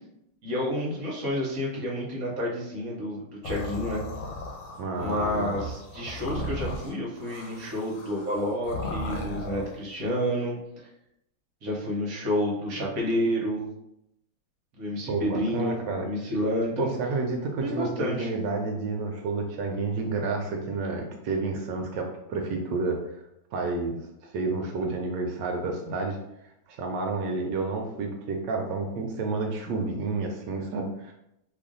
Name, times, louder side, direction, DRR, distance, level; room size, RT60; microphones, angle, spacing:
voice 1, 0.4-4.0 5.0-10.6 11.6-13.7 14.7-16.9 17.6-18.3, equal, 55° right, -3 dB, 1.2 m, -29 dB
sound 1, 3.4-9.8, left 1 dB, 80° left, 1.4 m, -36 dB
voice 2, 4.8-5.6 15.1-16.1 16.8-23.0 23.5-26.2 26.7-31.1, right 3 dB, 75° right, 2 dB, 1.1 m, -30 dB
3.2 x 2.5 x 3.7 m, 0.82 s
omnidirectional pair, 2.2 m